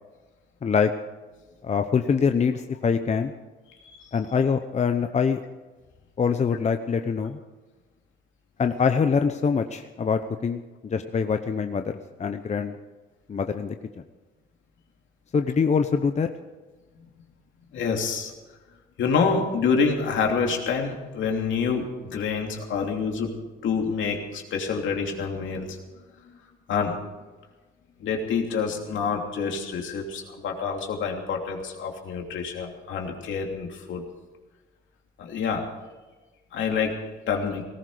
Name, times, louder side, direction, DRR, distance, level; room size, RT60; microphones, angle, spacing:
voice 1, 0.6-0.9 1.6-3.3 4.1-5.4 6.2-7.4 8.6-11.9 12.2-12.8 13.3-13.8 15.3-16.3, left 6 dB, 35° left, 7 dB, 0.8 m, -24 dB
voice 2, 17.7-18.3 19.0-23.3 23.6-25.8 26.3-26.4 26.7-27.0 28.0-34.0 35.2-35.7 36.5-37.0 37.3-37.6, left 5 dB, 75° left, 1 dB, 2.9 m, -27 dB
18.5 x 15.0 x 5.1 m, 1.2 s
cardioid pair, 90°, 20 cm